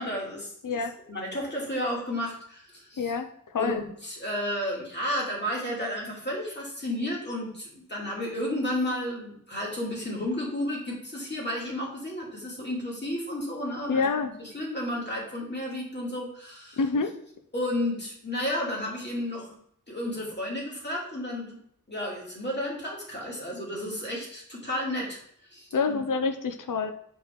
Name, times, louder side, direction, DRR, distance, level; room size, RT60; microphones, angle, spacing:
voice 1, 0.0-0.8 1.1-3.1 3.6-16.8 17.5-19.5 19.9-21.6 21.9-26.0, left 1 dB, 35° left, -4 dB, 2.3 m, -32 dB
voice 2, 3.0-3.8 13.9-14.3 16.8-17.2 25.7-26.9, left 4 dB, 75° left, 8 dB, 0.6 m, -27 dB
6.3 x 4.8 x 3.6 m, 0.68 s
wide cardioid pair, 60°, 32 cm